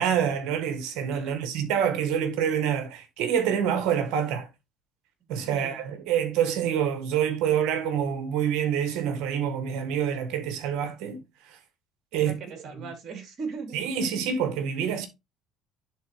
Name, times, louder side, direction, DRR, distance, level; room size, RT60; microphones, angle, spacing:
voice 1, 0.0-4.5 5.3-11.6 12.1-12.4 12.8-12.9 13.7-15.1, right 8 dB, 70° right, 1.5 m, -27 dB
voice 2, 5.4-5.9 12.1-13.8, right 5 dB, 55° right, 2.9 m, -39 dB
10.5 x 3.9 x 3.1 m
hypercardioid pair, 75°, 0 cm